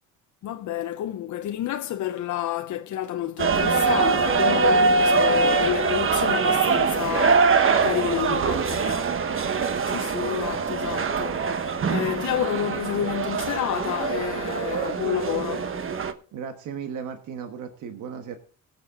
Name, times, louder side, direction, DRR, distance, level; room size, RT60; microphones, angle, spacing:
voice 1, 0.4-9.0 9.8-15.7, left 12 dB, 70° left, 0.8 m, -29 dB
sound 1, 3.4-16.1, right 4 dB, 45° right, 1.2 m, -23 dB
voice 2, 8.1-9.0 16.3-18.4, right 7 dB, 85° right, 1.4 m, -35 dB
18.0 x 7.6 x 3.8 m
cardioid pair, 90°, 30 cm